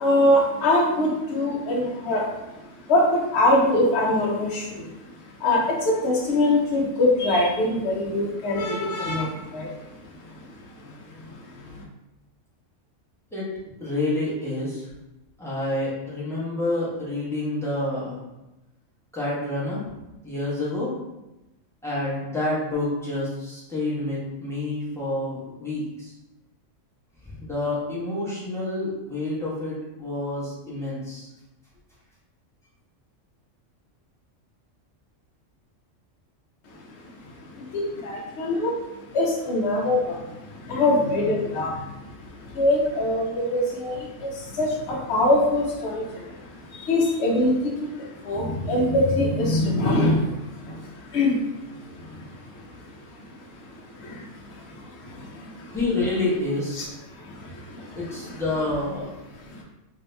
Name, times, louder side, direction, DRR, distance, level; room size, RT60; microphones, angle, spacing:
voice 1, 0.0-2.2 2.9-4.8 5.4-9.7 37.7-38.7 39.1-40.2 40.7-41.7 42.6-44.0 44.6-46.0 46.9-47.5 48.2-50.2 51.1-51.4 56.8-56.9, left 1 dB, 60° left, -2 dB, 0.9 m, -22 dB
voice 2, 13.8-14.9 15.4-18.2 19.1-19.8 20.2-20.9 21.8-26.1 27.3-31.3 55.7-56.8 57.9-59.1, left 2 dB, ahead, -8 dB, 0.9 m, -28 dB
2.8 x 2.7 x 3.3 m, 0.98 s
omnidirectional pair, 1.3 m